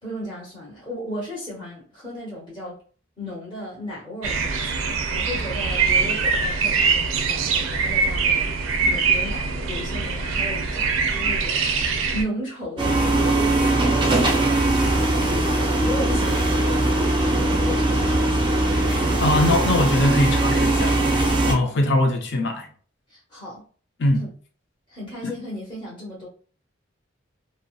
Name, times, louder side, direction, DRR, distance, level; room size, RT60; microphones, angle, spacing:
voice 1, 0.0-2.8 3.2-4.8 5.1-8.5 8.8-11.7 12.1-17.2 17.4-18.5 23.1-23.6 24.2-24.3 24.9-26.3, left 1 dB, 25° left, 1.0 m, -35 dB
sound 1, 4.2-12.2, right 5 dB, 90° right, 0.4 m, -23 dB
sound 2, 12.8-21.5, right 2 dB, 25° right, 0.4 m, -20 dB
voice 2, 19.2-21.0 21.5-22.7 24.0-24.3 25.2-25.3, left 1 dB, 60° left, 0.5 m, -21 dB
2.6 x 2.0 x 2.3 m
head